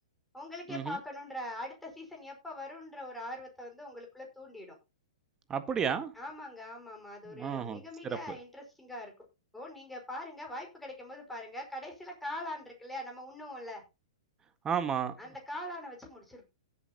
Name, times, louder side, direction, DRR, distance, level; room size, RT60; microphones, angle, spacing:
voice 1, 0.3-4.8 6.2-9.1 9.5-13.8 15.2-16.5, left 1 dB, 5° left, 5.3 m, -42 dB
voice 2, 5.5-6.1 7.2-8.4 14.6-15.1, right 7 dB, 20° right, 1.7 m, -33 dB
17.0 x 8.5 x 3.0 m
hypercardioid pair, 115°, 3 cm